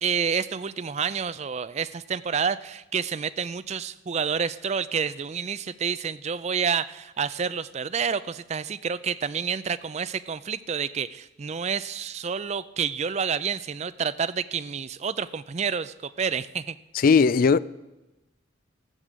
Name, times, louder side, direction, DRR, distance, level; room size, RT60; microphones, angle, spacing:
voice 1, 0.0-16.8, right 6 dB, 35° right, 0.4 m, -29 dB
voice 2, 16.9-17.6, left 5 dB, 45° left, 0.3 m, -18 dB
14.5 x 6.8 x 7.4 m
head